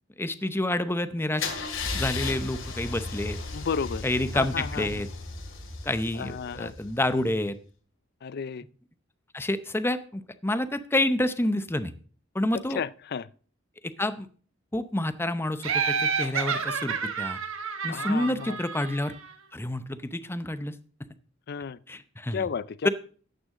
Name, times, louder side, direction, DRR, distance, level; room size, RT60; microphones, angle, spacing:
voice 1, 0.2-1.5 1.9-3.4 4.0-5.1 5.8-7.6 9.3-11.9 12.3-12.8 13.8-14.3 14.7-17.4 17.8-19.1 19.5-20.7 21.9-22.4, left 1 dB, 10° left, 0.7 m, -28 dB
Car / Engine starting / Idling, 1.4-7.2, left 3 dB, 75° left, 2.3 m, -35 dB
voice 2, 3.5-4.0 4.3-5.0 6.1-6.7 8.2-8.6 12.5-13.3 17.9-18.6 21.5-21.8 22.3-22.9, left 6 dB, 50° left, 0.4 m, -33 dB
Laughter, 15.6-19.3, right 6 dB, 75° right, 1.2 m, -29 dB
13.0 x 9.3 x 3.7 m
head